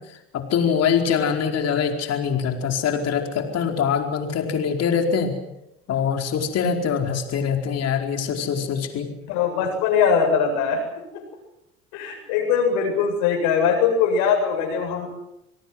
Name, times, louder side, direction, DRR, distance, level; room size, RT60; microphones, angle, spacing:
voice 1, 0.3-5.3 5.9-9.1, left 7 dB, 50° left, 4 dB, 4.7 m, -23 dB
voice 2, 9.3-10.8 11.1-11.2 11.9-15.1, left 6 dB, 70° left, 4 dB, 7.8 m, -21 dB
28.0 x 18.5 x 8.1 m, 0.84 s
hypercardioid pair, 75°, 32 cm